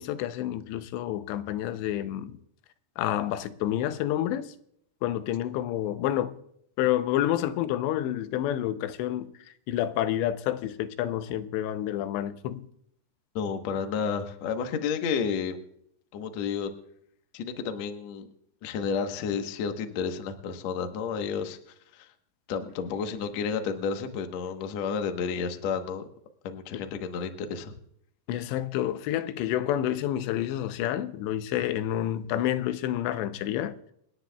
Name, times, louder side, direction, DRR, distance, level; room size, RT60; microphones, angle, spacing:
voice 1, 0.0-2.4 3.0-4.5 5.0-6.3 6.8-9.3 9.7-12.7 26.7-26.8 28.3-33.7, left 12 dB, 90° left, 2.9 m, -29 dB
voice 2, 13.3-15.6 16.1-16.7 17.3-18.3 18.6-21.6 21.9-22.1 22.5-26.0 26.4-27.7, left 6 dB, 75° left, 1.6 m, -31 dB
28.5 x 10.0 x 2.3 m
omnidirectional pair, 4.8 m